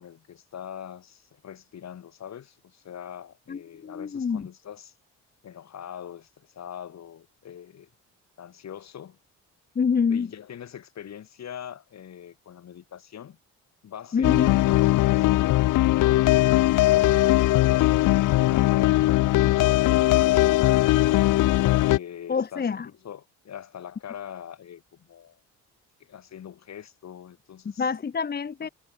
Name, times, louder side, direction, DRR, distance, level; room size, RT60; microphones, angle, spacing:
voice 1, 0.0-4.9 5.4-7.9 8.4-9.2 10.1-13.4 13.8-21.2 21.8-25.4 26.0-27.9 28.6-28.7, left 9 dB, 55° left, 3.1 m, -42 dB
voice 2, 3.5-4.5 9.8-10.3 14.1-14.6 22.3-22.9 27.8-28.7, left 6 dB, 30° left, 1.1 m, -26 dB
sound 1, 14.2-22.0, left 17 dB, 75° left, 0.8 m, -20 dB
supercardioid pair, 75°, 32 cm